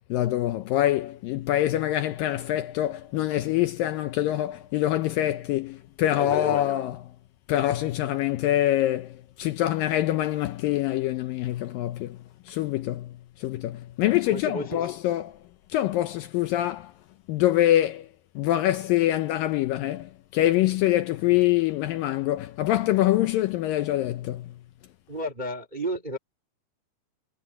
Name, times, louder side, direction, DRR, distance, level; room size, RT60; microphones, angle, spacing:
voice 1, 0.1-7.0 7.5-12.2 12.5-15.4 15.7-16.9 17.3-18.1 18.4-24.5, left 14 dB, 75° left, 2.1 m, -25 dB
voice 2, 6.1-6.7 14.3-14.9 25.1-26.2, right 1 dB, 20° right, 1.1 m, -32 dB
omnidirectional pair, 4.6 m